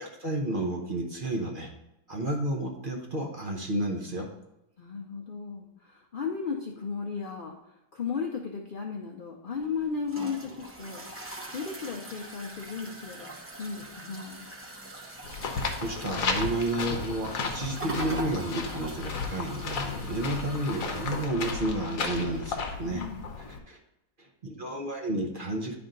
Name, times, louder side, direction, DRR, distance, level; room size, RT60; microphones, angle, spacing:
voice 1, 0.0-1.7 2.1-4.3 15.8-23.0 23.4-23.8 24.2-25.7, right 1 dB, 40° right, 0 dB, 0.8 m, -31 dB
voice 2, 4.8-7.6 7.9-11.1 11.5-13.3 13.6-14.5 22.8-23.4, left 5 dB, 80° left, 0 dB, 0.4 m, -35 dB
sound 1, 9.5-21.2, right 1 dB, 20° right, 0.3 m, -42 dB
sound 2, 15.2-23.6, left 4 dB, 55° left, 1.2 m, -34 dB
10.5 x 3.5 x 3.8 m, 0.89 s
omnidirectional pair, 1.9 m